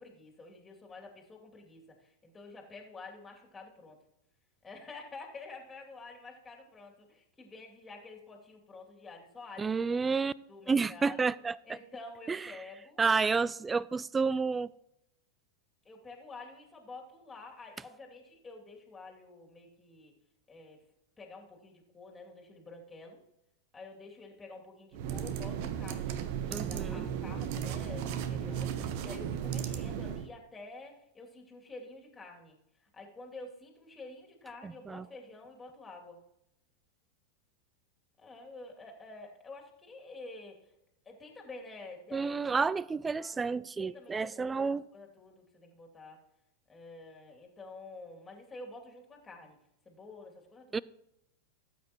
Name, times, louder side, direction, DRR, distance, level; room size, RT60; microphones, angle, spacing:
voice 1, 0.0-4.0 4.6-10.0 10.5-11.3 11.6-13.2 15.8-20.1 20.5-20.8 21.2-23.2 23.7-26.2 26.6-32.6 32.8-36.2 38.2-40.6 41.0-42.7 43.1-43.4 43.8-46.2 46.7-49.6 49.8-50.8, left 3 dB, 15° left, 2.8 m, -49 dB
voice 2, 9.6-10.3 10.7-11.6 12.3-12.5 13.0-14.7 26.5-27.1 34.6-35.1 42.1-44.8 50.7-50.8, right 4 dB, 15° right, 0.3 m, -30 dB
sound 1, 24.9-30.3, right 8 dB, 45° right, 0.9 m, -35 dB
17.5 x 8.6 x 3.1 m
figure-of-eight pair, 90°, 0 cm